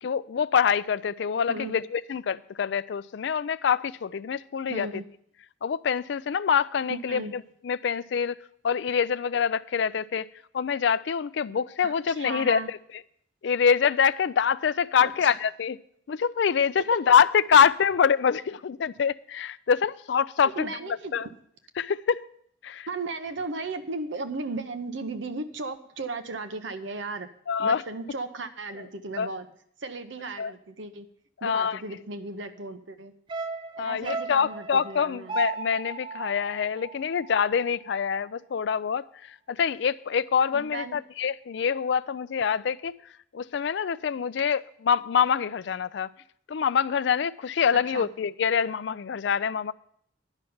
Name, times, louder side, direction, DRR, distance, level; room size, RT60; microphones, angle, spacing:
voice 1, 0.0-4.9 5.6-8.4 8.6-10.3 10.5-12.8 13.4-15.8 16.1-20.7 21.1-21.3 21.8-22.2 22.6-22.9 27.5-27.8 29.2-29.3 30.4-30.5 31.4-31.8 33.8-43.0 43.3-46.1 46.5-49.7, left 7 dB, 65° left, 0.4 m, -25 dB
voice 2, 4.7-5.0 6.9-7.3 11.8-12.7 15.0-15.4 16.9-17.0 20.4-21.3 22.9-27.3 27.6-29.5 29.8-31.1 31.4-33.1 33.8-35.4 40.5-41.0 47.9-48.1, right 3 dB, 80° right, 0.9 m, -35 dB
sound 1, 33.3-37.7 38.0-38.1, right 4 dB, 25° right, 0.5 m, -36 dB
10.5 x 5.8 x 7.8 m
head